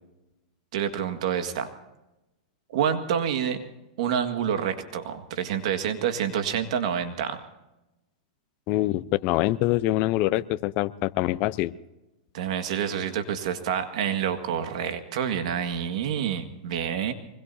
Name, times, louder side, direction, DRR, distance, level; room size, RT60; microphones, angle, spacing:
voice 1, 0.7-1.7 2.7-3.6 4.0-7.4 12.3-17.1, right 8 dB, 65° right, 7 dB, 1.9 m, -28 dB
voice 2, 8.7-11.7, left 16 dB, 40° left, 14 dB, 0.7 m, -25 dB
24.0 x 21.5 x 2.8 m, 0.98 s
hypercardioid pair, 135°, 4 cm